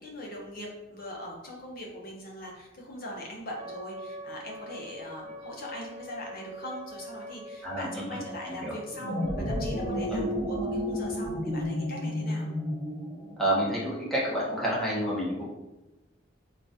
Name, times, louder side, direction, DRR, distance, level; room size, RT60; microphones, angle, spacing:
voice 1, 0.0-9.2 9.4-12.5, equal, 50° left, -2 dB, 0.7 m, -41 dB
Wind instrument woodwind instrument, 3.6-10.1, right 1 dB, 40° right, 0.4 m, -44 dB
voice 2, 7.6-8.2 8.6-8.7 10.1-10.2 13.4-15.5, right 1 dB, ahead, -7 dB, 0.9 m, -29 dB
sound 1, 8.9-13.5, left 1 dB, 90° left, 0.9 m, -31 dB
3.8 x 2.4 x 2.6 m, 1.0 s
head